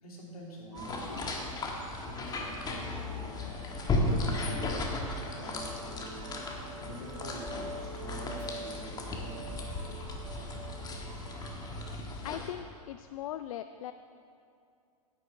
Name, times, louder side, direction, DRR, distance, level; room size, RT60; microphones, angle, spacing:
voice 1, 0.0-1.3 2.0-3.5 3.9-6.2 6.8-9.7, left 1 dB, 85° left, -3 dB, 2.8 m, -45 dB
sound 1, 0.7-12.0, right 2 dB, 85° right, 1.3 m, -47 dB
sound 2, 0.8-12.5, left 2 dB, 20° left, 1.4 m, -36 dB
voice 2, 12.2-13.9, left 12 dB, 70° left, 10 dB, 0.4 m, -39 dB
10.0 x 6.2 x 6.7 m, 2.5 s
hypercardioid pair, 110°, 18 cm